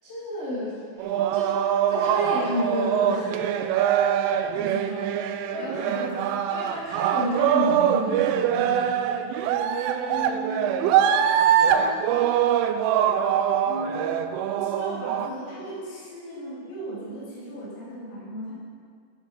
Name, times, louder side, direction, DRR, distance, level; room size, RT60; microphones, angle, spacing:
voice 1, 0.0-3.4 5.5-5.6 6.5-8.9, equal, 25° left, -10 dB, 1.7 m, -30 dB
sound 1, 1.0-15.3, right 9 dB, 85° right, 3.1 m, -23 dB
voice 2, 4.5-6.2 10.1-11.0 11.5-12.2 13.7-14.1 14.5-18.5, equal, 85° left, -7 dB, 5.2 m, -37 dB
11.0 x 9.3 x 5.1 m, 2.1 s
omnidirectional pair, 5.6 m